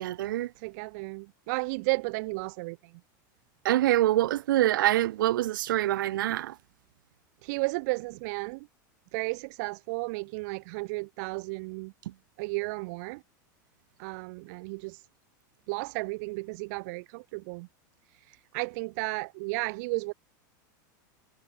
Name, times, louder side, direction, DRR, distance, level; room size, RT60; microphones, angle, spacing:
voice 1, 0.0-0.5 3.6-6.6 12.0-12.1, right 14 dB, 85° right, 1.2 m, -25 dB
voice 2, 0.6-2.9 7.4-8.7 9.1-11.9 12.4-13.2 14.0-15.0 15.7-17.7 18.3-20.1, right 27 dB, 55° right, 0.4 m, -33 dB
supercardioid pair, 145°, 11 cm